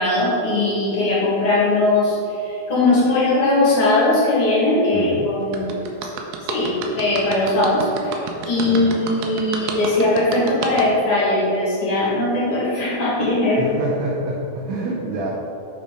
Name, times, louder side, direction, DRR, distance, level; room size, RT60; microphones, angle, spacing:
voice 1, 0.0-5.8 6.5-13.8, left 2 dB, 45° left, -7 dB, 2.4 m, -19 dB
voice 2, 4.9-5.3 8.6-8.9 13.6-15.3, right 1 dB, 70° right, -4 dB, 1.8 m, -27 dB
sound 1, 5.5-10.8, right 6 dB, 85° right, 2.6 m, -29 dB
8.6 x 4.3 x 5.1 m, 2.8 s
omnidirectional pair, 4.1 m